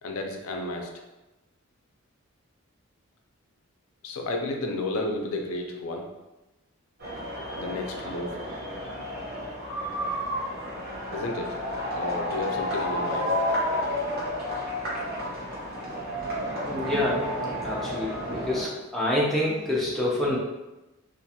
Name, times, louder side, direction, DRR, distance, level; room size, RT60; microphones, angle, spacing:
voice 1, 0.0-0.9 4.0-6.1 7.5-8.4 11.1-11.6 11.9-13.3, left 2 dB, 75° left, 3 dB, 0.4 m, -32 dB
sound 1, 7.0-18.6, equal, 45° right, 0.8 m, -31 dB
voice 2, 16.7-17.3 17.6-20.4, left 1 dB, ahead, -6 dB, 0.4 m, -27 dB
2.4 x 2.2 x 2.7 m, 1.1 s
head